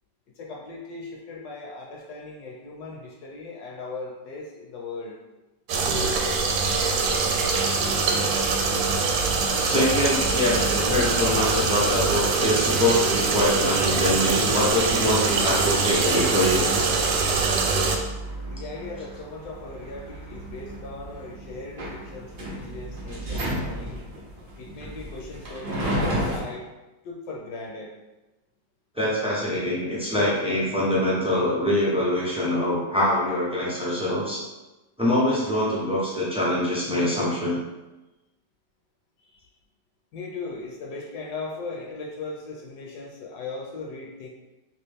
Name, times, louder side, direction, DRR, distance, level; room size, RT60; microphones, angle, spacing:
voice 1, 0.4-5.2 18.4-24.0 24.6-26.7 27.0-27.9 39.2-39.5 40.1-44.3, left 3 dB, 70° left, -1 dB, 1.1 m, -38 dB
sound 1, 5.7-18.0, right 4 dB, 80° right, 1.2 m, -23 dB
sound 2, 7.5-26.4, right 1 dB, 50° right, 0.6 m, -35 dB
voice 2, 9.6-16.7 28.9-34.4 35.0-37.6, left 1 dB, 10° right, -8 dB, 0.3 m, -24 dB
3.0 x 2.9 x 3.4 m, 1.1 s
omnidirectional pair, 1.9 m